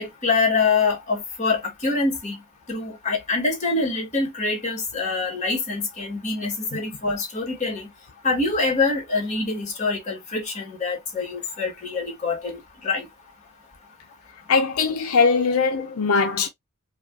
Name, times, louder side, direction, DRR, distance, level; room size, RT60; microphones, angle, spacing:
voice 1, 0.0-2.4 2.7-7.9 8.2-13.1, left 3 dB, 35° left, 1.8 m, -25 dB
voice 2, 14.5-16.5, left 4 dB, 90° left, 0.6 m, -20 dB
4.9 x 2.4 x 2.2 m
head